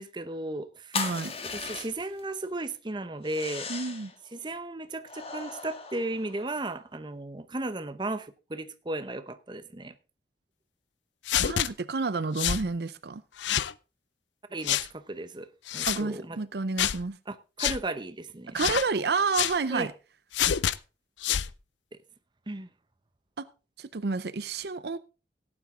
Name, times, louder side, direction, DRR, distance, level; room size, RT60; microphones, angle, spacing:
voice 1, 0.0-1.0 1.4-3.7 4.3-9.9 14.5-15.5 15.7-16.4 17.3-18.6 19.7-19.9 22.5-22.7, right 2 dB, 25° right, 0.8 m, -35 dB
sound 1, 0.9-2.2 3.2-4.1 5.1-6.7, left 5 dB, 35° left, 1.5 m, -37 dB
voice 2, 0.9-1.3 3.7-4.1 11.4-13.2 15.9-17.2 18.5-19.9 23.4-23.5 23.8-25.0, right 4 dB, 60° right, 0.6 m, -30 dB
sound 2, 11.3-11.7 12.4-12.6 13.4-13.7 14.6-14.9 15.7-16.0 16.8-17.0 17.6-17.8 18.6-18.9 19.3-19.6 20.3-20.8 21.2-21.5, left 10 dB, 85° left, 0.5 m, -27 dB
16.5 x 8.8 x 3.7 m
head